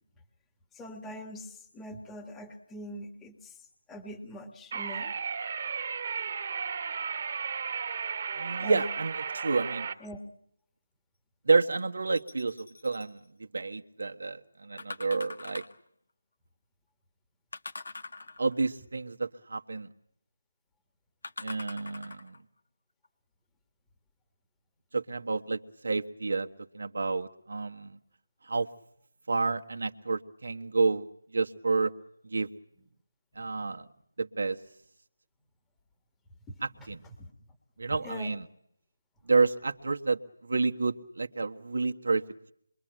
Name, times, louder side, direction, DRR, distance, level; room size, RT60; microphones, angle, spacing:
voice 1, 0.7-3.6 3.9-5.1 8.6-8.9 10.0-10.2 36.5-36.6 37.2-37.3 38.0-38.3, equal, 5° left, 5 dB, 1.8 m, -43 dB
sound 1, 4.7-9.9, right 6 dB, 40° right, 2.0 m, -34 dB
voice 2, 8.4-9.9 11.5-13.2 13.5-15.6 18.4-19.9 21.4-22.3 24.9-26.5 26.7-28.0 28.4-28.7 29.3-31.1 31.3-31.9 32.2-32.5 33.3-33.9 34.2-34.6 36.6-37.0 37.8-38.4 39.3-42.5, right 4 dB, 60° right, 4 dB, 1.5 m, -29 dB
sound 2, 12.1-13.1 14.8-15.9 17.5-18.7 21.2-22.4 23.0-23.1, left 3 dB, 65° left, 2.2 m, -43 dB
27.5 x 23.5 x 9.0 m, 0.72 s
figure-of-eight pair, 165°, 0 cm